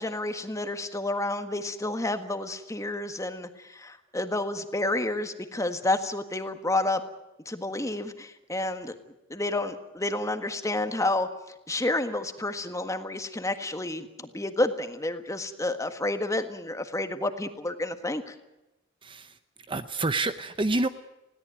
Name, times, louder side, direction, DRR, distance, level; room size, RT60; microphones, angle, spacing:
voice 1, 0.0-7.0 7.4-8.9 9.3-11.3 11.7-18.3, left 2 dB, 15° left, 8 dB, 1.6 m, -30 dB
voice 2, 19.0-19.3 19.7-20.9, right 2 dB, 25° right, 11 dB, 0.7 m, -28 dB
20.5 x 17.0 x 9.3 m, 0.95 s
head